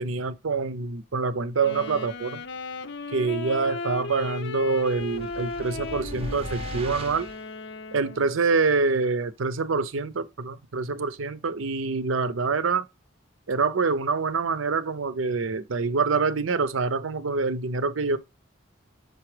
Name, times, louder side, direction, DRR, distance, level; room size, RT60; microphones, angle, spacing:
voice 1, 0.0-2.4 3.1-7.3 7.9-12.9 13.5-18.2, right 4 dB, 80° right, 0.6 m, -26 dB
Wind instrument woodwind instrument, 1.6-8.4, left 4 dB, 55° left, 0.5 m, -36 dB
sound 1, 4.9-7.5, right 2 dB, 30° right, 0.6 m, -38 dB
6.7 x 4.7 x 3.3 m
head